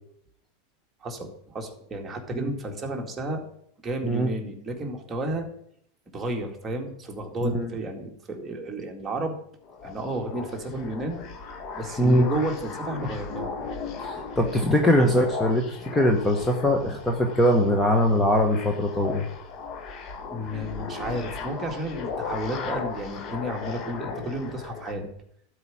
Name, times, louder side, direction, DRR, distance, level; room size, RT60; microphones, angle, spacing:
voice 1, 1.0-3.4 3.8-5.5 6.1-9.4 9.8-11.2 11.7-13.5 20.3-25.1, right 1 dB, 15° right, 2 dB, 2.1 m, -32 dB
sound 1, 9.6-24.9, left 4 dB, 40° left, 1.6 m, -37 dB
voice 2, 14.0-19.2, equal, 10° left, 3 dB, 1.2 m, -22 dB
12.0 x 4.9 x 8.7 m, 0.70 s
supercardioid pair, 130°, 0 cm